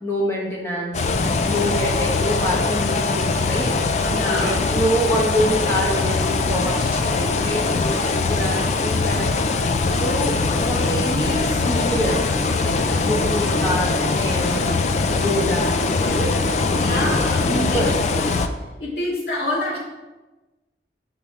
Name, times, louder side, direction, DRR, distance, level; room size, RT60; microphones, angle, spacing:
voice 1, 0.0-1.1 1.4-9.3 9.9-12.2 12.5-14.7 15.0-16.3 16.7-17.9, equal, 15° left, -4 dB, 1.4 m, -26 dB
sound 1, 0.9-18.5, left 3 dB, 40° left, 0.3 m, -21 dB
voice 2, 4.1-4.6 16.8-17.8 18.2-18.3 18.8-19.8, left 1 dB, 60° left, -6 dB, 2.1 m, -26 dB
5.9 x 5.3 x 3.6 m, 1.2 s
head